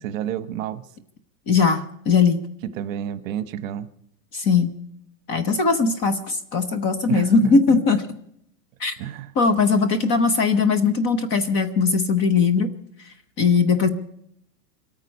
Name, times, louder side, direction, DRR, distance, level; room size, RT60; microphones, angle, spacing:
voice 1, 0.0-0.8 2.7-3.9 7.1-7.8 9.0-9.3, right 11 dB, 50° right, 13 dB, 1.2 m, -29 dB
voice 2, 1.5-2.4 4.3-4.8 5.3-8.0 8.8-8.9 9.4-12.7 13.0-13.9, left 5 dB, 20° left, 10 dB, 0.7 m, -20 dB
26.5 x 9.2 x 5.3 m, 0.71 s
supercardioid pair, 175°, 50 cm